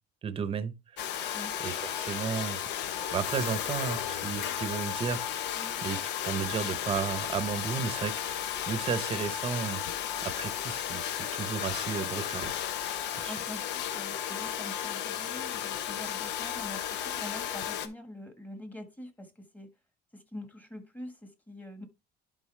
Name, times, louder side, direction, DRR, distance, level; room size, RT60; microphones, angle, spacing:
voice 1, 0.2-1.1 1.6-2.6 3.1-6.0 6.3-9.8 10.2-12.5 13.2-13.4, right 6 dB, 30° right, 0.8 m, -34 dB
Domestic sounds home sounds, 1.0-17.9, left 10 dB, 70° left, 0.9 m, -34 dB
voice 2, 13.2-19.7 20.1-21.9, left 1 dB, 10° left, 1.5 m, -45 dB
11.0 x 3.9 x 3.3 m
cardioid pair, 150°, 18 cm